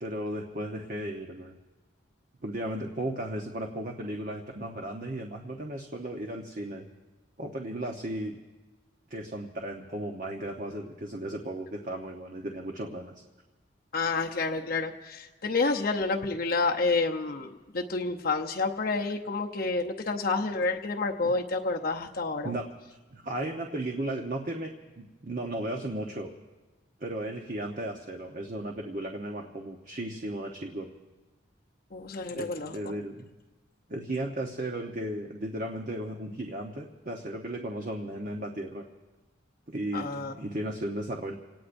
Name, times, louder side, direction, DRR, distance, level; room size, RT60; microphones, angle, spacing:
voice 1, 0.0-1.6 2.4-6.9 7.4-8.4 9.1-13.1 21.2-21.3 22.4-22.7 23.1-26.3 27.0-30.9 32.3-33.3 33.9-38.9 39.7-41.3, right 1 dB, 40° right, 2 dB, 1.0 m, -35 dB
voice 2, 13.9-22.5 31.9-32.7 39.9-40.3, left 3 dB, 45° left, 2 dB, 0.8 m, -29 dB
28.0 x 18.5 x 2.6 m, 1.2 s
head